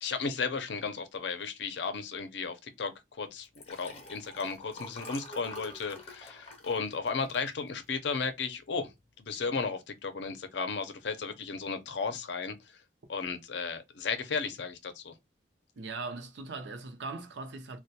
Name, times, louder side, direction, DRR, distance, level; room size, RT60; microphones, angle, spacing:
voice 1, 0.0-8.9 9.2-12.8 13.1-15.2, left 5 dB, 75° left, 0.5 m, -34 dB
Liquid, 3.4-8.1 8.6-8.8 9.1-9.2, left 1 dB, 35° left, 0.6 m, -47 dB
voice 2, 15.8-17.8, right 3 dB, 80° right, 0.5 m, -39 dB
2.2 x 2.2 x 2.7 m
head